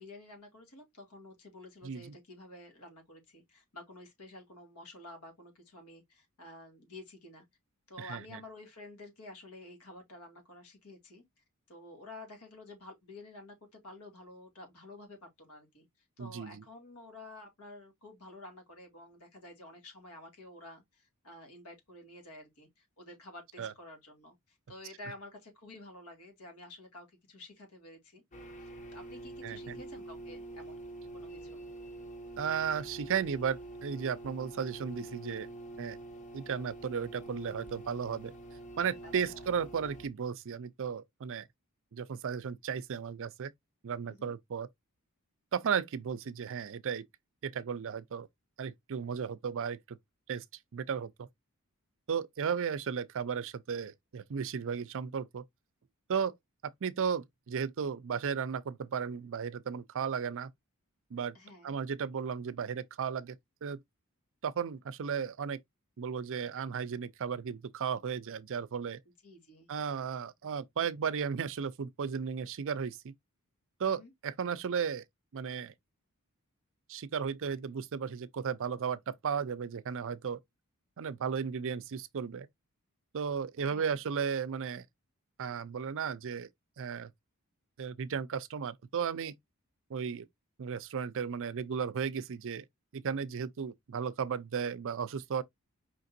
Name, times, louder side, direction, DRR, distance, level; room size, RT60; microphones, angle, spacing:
voice 1, 0.0-7.5 7.9-28.2 28.6-30.8 31.1-31.6 39.0-39.5 44.1-44.3 61.3-61.8 69.2-69.7 73.8-74.1 83.6-83.9, left 2 dB, 85° left, 2.2 m, -51 dB
voice 2, 1.8-2.1 8.0-8.2 16.2-16.6 23.6-23.7 29.4-29.8 32.4-35.5 35.8-36.0 36.3-38.3 38.8-41.5 41.9-43.5 43.8-44.7 45.5-47.0 47.4-48.3 48.6-50.0 50.3-50.4 50.7-51.3 52.1-55.4 56.1-56.3 56.8-60.5 61.1-61.4 61.6-63.4 63.6-63.8 64.4-65.6 66.0-69.0 69.7-73.1 73.8-75.0 75.3-75.7 76.9-80.4 81.0-82.5 83.1-84.9 85.4-86.5 86.8-87.1 87.8-89.3 89.9-90.3 90.6-92.6 92.9-95.4, right 6 dB, 60° right, 0.5 m, -35 dB
sound 1, 28.3-40.1, right 2 dB, 35° left, 1.1 m, -46 dB
5.1 x 3.7 x 2.5 m
head